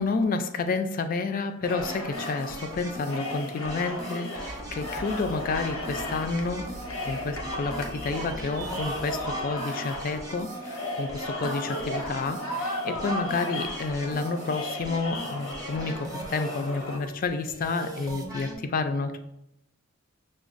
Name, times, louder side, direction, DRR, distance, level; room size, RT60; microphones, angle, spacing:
voice 1, 0.0-6.6 7.0-19.2, left 4 dB, 45° left, 8 dB, 0.3 m, -30 dB
sound 1, 1.6-17.0, left 1 dB, 90° left, 0.6 m, -35 dB
sound 2, 1.8-18.5, right 1 dB, 15° right, 0.6 m, -41 dB
sound 3, 4.4-9.4, right 2 dB, 80° right, 0.7 m, -42 dB
5.9 x 2.2 x 2.5 m, 0.83 s
head